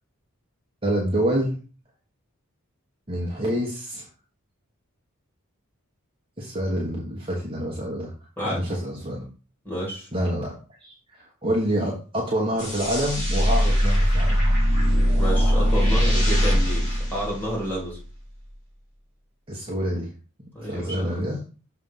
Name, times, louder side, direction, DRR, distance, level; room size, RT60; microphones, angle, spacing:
voice 1, 0.8-1.5 3.1-4.1 6.4-8.1 8.4-9.3 10.1-10.5 10.8-14.4 19.5-20.1 20.6-21.4, equal, 25° right, -3 dB, 1.2 m, -27 dB
voice 2, 8.4-8.7 9.6-10.1 15.2-18.0 20.5-21.2, equal, 10° left, -5 dB, 3.2 m, -30 dB
sound 1, 12.6-17.9, equal, 35° left, 3.4 m, -21 dB
6.5 x 3.4 x 5.5 m, 0.36 s
head